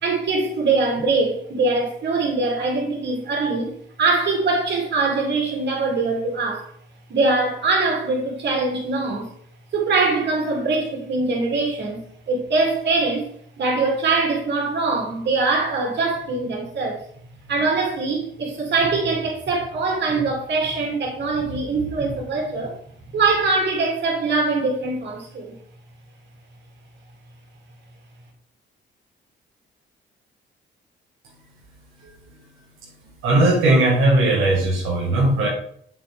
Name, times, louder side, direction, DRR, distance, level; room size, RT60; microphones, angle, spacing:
voice 1, 0.0-3.7 4.0-6.7 7.1-9.3 9.7-13.3 13.6-17.0 17.5-22.8 23.1-25.5, right 3 dB, 60° right, 3.4 m, -22 dB
voice 2, 33.2-35.5, right 2 dB, 90° right, 2.2 m, -18 dB
7.6 x 7.5 x 3.7 m
cardioid pair, 90°, 20 cm